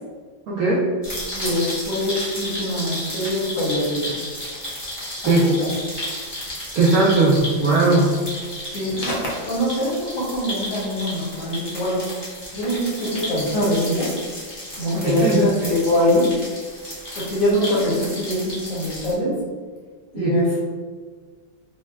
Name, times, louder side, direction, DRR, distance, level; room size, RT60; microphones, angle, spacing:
voice 1, 0.5-0.9 5.2-5.5 6.7-8.1 14.9-15.7 20.1-20.3, right 3 dB, 75° right, -6 dB, 0.8 m, -18 dB
sound 1, 1.0-19.1, left 1 dB, 40° left, 0.3 m, -33 dB
voice 2, 1.3-4.2 5.2-5.6 8.7-12.0 12.5-14.1 14.8-16.3 17.1-19.4 20.1-20.6, left 1 dB, 55° left, -5 dB, 1.0 m, -23 dB
4.1 x 2.1 x 2.2 m, 1.5 s
omnidirectional pair, 2.0 m